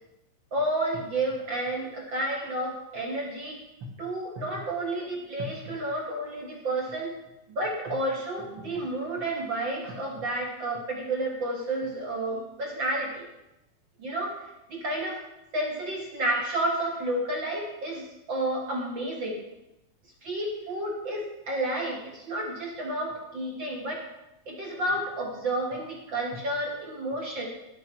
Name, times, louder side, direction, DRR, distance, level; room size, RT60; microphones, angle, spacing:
voice 1, 0.5-3.6 4.0-7.1 7.5-13.3 14.0-14.4 14.7-15.2 15.5-19.4 20.2-24.0 24.4-27.5, right 1 dB, 50° right, -1 dB, 1.5 m, -31 dB
12.0 x 8.7 x 4.6 m, 0.93 s
omnidirectional pair, 4.3 m